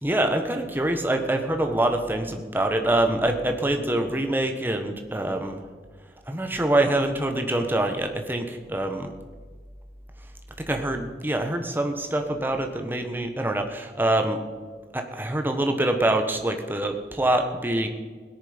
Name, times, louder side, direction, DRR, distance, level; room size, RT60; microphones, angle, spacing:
voice 1, 0.0-5.7 6.3-9.1 10.6-14.4 14.9-17.9, right 1 dB, 10° right, 5 dB, 1.1 m, -25 dB
17.0 x 10.5 x 5.1 m, 1.5 s
head